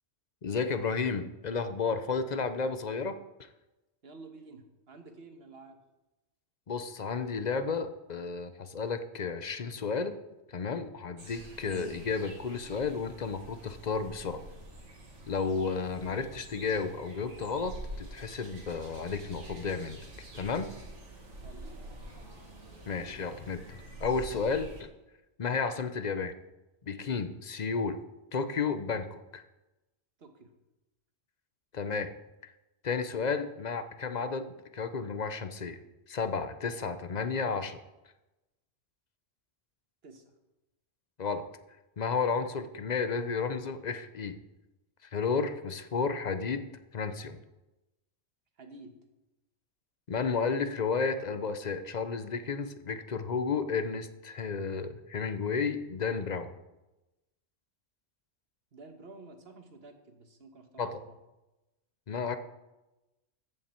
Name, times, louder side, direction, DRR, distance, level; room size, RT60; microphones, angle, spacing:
voice 1, 0.4-3.2 6.7-10.2 10.5-14.4 15.3-20.0 20.3-20.7 22.9-24.7 25.4-26.3 26.9-28.0 28.3-29.4 31.7-32.1 32.4-32.5 32.8-35.8 36.1-37.8 41.2-41.4 42.0-44.4 45.0-46.7 46.9-47.4 50.1-56.5 60.8-61.0 62.1-62.4, left 5 dB, 40° left, 10 dB, 0.7 m, -32 dB
voice 2, 4.0-5.8 21.3-22.0 30.2-30.5 40.0-40.2 48.6-48.9 58.7-61.2, right 3 dB, 55° right, 6 dB, 1.5 m, -51 dB
sound 1, 11.2-24.8, right 1 dB, 75° right, 2.2 m, -47 dB
14.5 x 8.8 x 4.5 m, 1.0 s
omnidirectional pair, 1.2 m